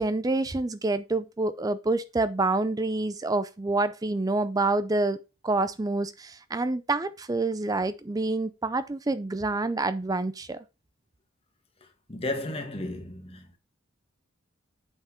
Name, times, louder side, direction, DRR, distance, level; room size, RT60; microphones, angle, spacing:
voice 1, 0.0-5.2 5.4-10.6, right 2 dB, 15° right, 0.4 m, -27 dB
voice 2, 12.1-13.6, left 2 dB, 30° left, 1.6 m, -33 dB
8.0 x 5.8 x 4.4 m
head